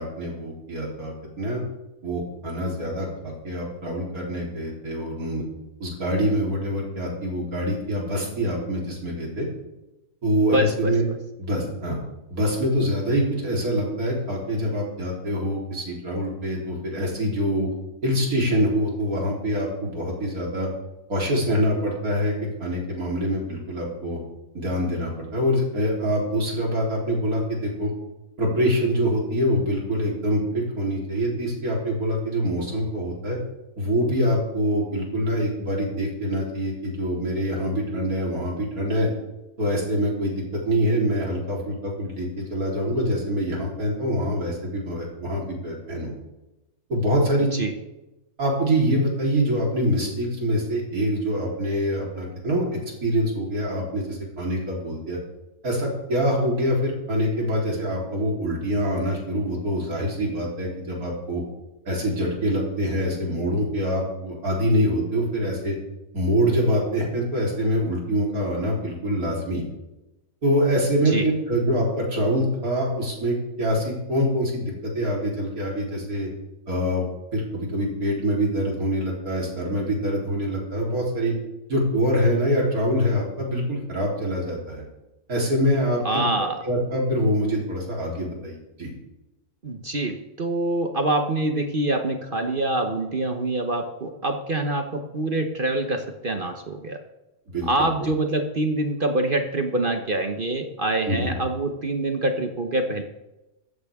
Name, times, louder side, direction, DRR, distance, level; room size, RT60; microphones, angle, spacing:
voice 1, 0.0-1.6 2.0-5.4 5.8-9.5 10.2-11.1 11.4-12.0 12.3-17.7 18.0-20.7 21.1-22.3 22.6-24.2 24.5-27.9 28.4-33.4 33.8-39.1 39.6-46.1 46.9-47.5 48.4-52.6 53.0-55.2 55.6-61.4 61.9-65.7 66.1-69.6 70.4-76.3 76.7-77.0 77.3-81.3 81.7-84.8 85.3-86.2 86.6-88.9 97.5-97.7 101.1-101.4, equal, 80° right, -3 dB, 4.1 m, -25 dB
voice 2, 10.4-10.9 47.4-47.7 71.0-71.3 86.0-86.6 89.6-97.0 97.7-103.0, right 2 dB, 40° right, 5 dB, 1.0 m, -25 dB
15.0 x 14.0 x 3.6 m, 0.98 s
omnidirectional pair, 1.5 m